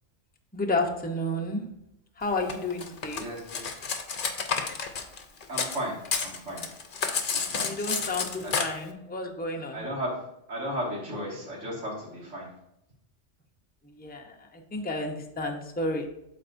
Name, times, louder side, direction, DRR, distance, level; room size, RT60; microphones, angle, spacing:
voice 1, 0.5-1.7 2.2-3.3 7.5-9.9 13.8-16.1, left 2 dB, 10° left, 2 dB, 0.6 m, -31 dB
Cutlery silverware, 2.5-5.8 6.0-8.6, left 5 dB, 50° left, 0.9 m, -30 dB
voice 2, 3.1-3.7 5.5-6.7 7.3-7.8 8.4-8.5 9.7-10.2 10.5-12.5, equal, 80° right, -4 dB, 2.5 m, -35 dB
12.0 x 4.1 x 2.6 m, 0.82 s
omnidirectional pair, 1.2 m